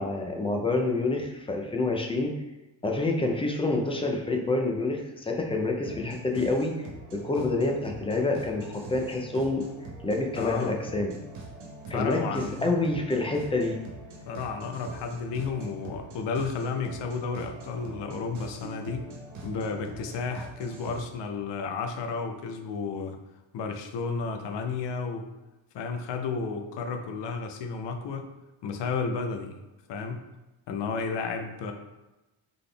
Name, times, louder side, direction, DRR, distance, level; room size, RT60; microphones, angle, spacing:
voice 1, 0.0-2.3 2.8-6.7 7.1-9.7 10.0-11.2 11.9-13.8, left 2 dB, 10° left, 2 dB, 0.5 m, -27 dB
sound 1, 5.8-21.0, right 2 dB, 80° right, 1.4 m, -43 dB
voice 2, 10.4-10.8 11.9-12.8 14.3-19.1 19.4-23.2 23.5-25.3 25.7-28.3 28.6-29.6 29.9-30.2 30.7-31.7, left 4 dB, 65° left, 5 dB, 0.7 m, -32 dB
4.0 x 3.8 x 3.3 m, 1.0 s
cardioid pair, 135°, 47 cm